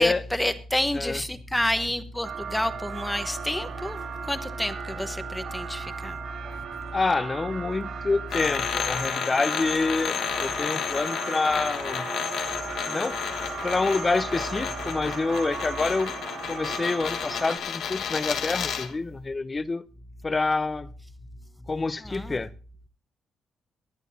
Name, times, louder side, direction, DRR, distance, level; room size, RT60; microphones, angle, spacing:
voice 1, 0.0-6.2 22.0-22.4, left 1 dB, 5° left, 1.0 m, -29 dB
sound 1, 2.2-17.6, right 7 dB, 70° right, 3.8 m, -37 dB
voice 2, 6.9-12.1 12.9-13.2 13.6-16.2 16.5-19.8 20.2-20.9 21.7-22.5, left 3 dB, 25° left, 0.6 m, -27 dB
sound 2, 8.3-18.9, left 7 dB, 70° left, 1.3 m, -31 dB
23.5 x 10.5 x 2.7 m
cardioid pair, 120°, 0 cm